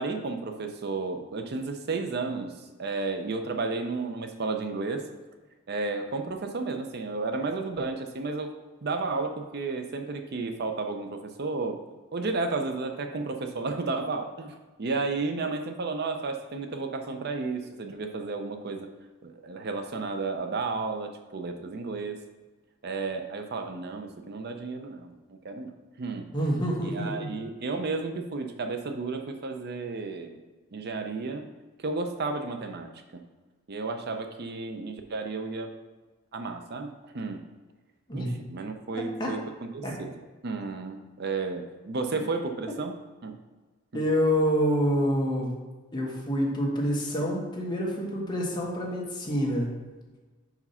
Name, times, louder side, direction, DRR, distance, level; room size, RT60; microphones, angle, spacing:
voice 1, 0.0-5.0 5.7-8.5 8.8-11.8 12.1-18.9 19.2-22.2 22.8-25.7 26.0-26.3 26.8-30.4 30.7-31.5 31.8-33.2 33.7-35.7 36.3-37.4 38.1-39.4 39.7-40.1 40.4-43.0 43.2-43.4, right 3 dB, 50° right, 6 dB, 0.6 m, -32 dB
voice 2, 26.3-27.3 38.1-38.3 39.2-39.3 39.8-39.9 43.9-45.5 45.9-49.7, equal, 20° left, -3 dB, 1.4 m, -27 dB
5.3 x 4.9 x 5.5 m, 1.3 s
head